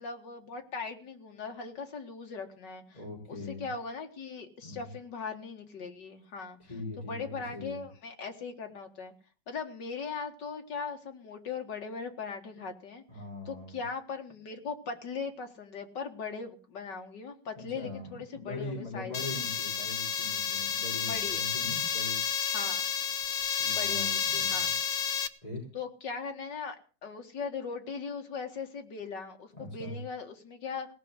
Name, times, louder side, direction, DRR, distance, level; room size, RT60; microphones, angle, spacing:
voice 1, 0.0-3.0 3.3-6.6 7.0-9.1 9.5-13.0 13.5-19.2 21.1-21.4 22.5-22.9 23.7-24.7 25.7-26.8 27.0-30.9, left 5 dB, 75° left, 5 dB, 2.5 m, -39 dB
voice 2, 2.9-3.7 4.6-4.9 6.6-7.8 13.1-13.8 17.6-22.2 23.6-24.7 25.4-25.6 29.5-30.0, left 2 dB, 20° left, -3 dB, 5.0 m, -41 dB
sound 1, 19.1-25.3, left 7 dB, 55° left, 1.2 m, -31 dB
18.0 x 6.3 x 9.8 m, 0.38 s
omnidirectional pair, 1.9 m